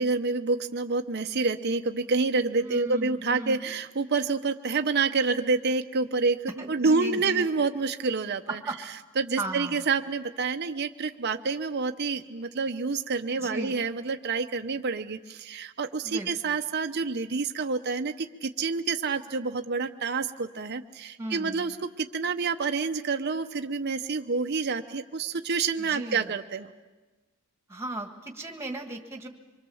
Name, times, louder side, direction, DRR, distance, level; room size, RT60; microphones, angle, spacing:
voice 1, 0.0-8.6 9.2-26.7, right 4 dB, 50° right, 7 dB, 0.8 m, -28 dB
voice 2, 2.6-3.6 6.6-7.5 8.6-8.8 9.4-9.8 13.4-13.8 16.0-16.6 21.2-21.7 25.8-26.3 27.7-29.3, right 2 dB, 10° right, 4 dB, 1.8 m, -36 dB
25.0 x 24.0 x 7.1 m, 1.2 s
head